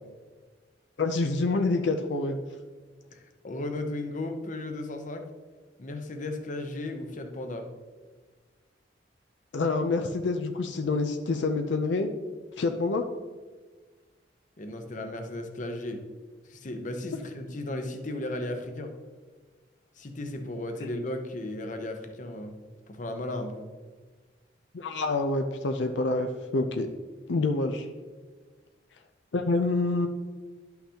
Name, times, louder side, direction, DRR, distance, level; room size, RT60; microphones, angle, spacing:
voice 1, 1.0-2.4 9.5-12.1 12.6-13.0 20.8-20.9 24.7-26.9 27.3-27.9 29.3-30.1, left 3 dB, 80° left, 5 dB, 0.5 m, -27 dB
voice 2, 3.1-5.3 5.8-7.7 14.6-16.0 16.5-18.9 20.0-22.6 22.9-23.7, left 1 dB, 45° left, 5 dB, 0.8 m, -35 dB
11.0 x 5.8 x 2.9 m, 1.4 s
head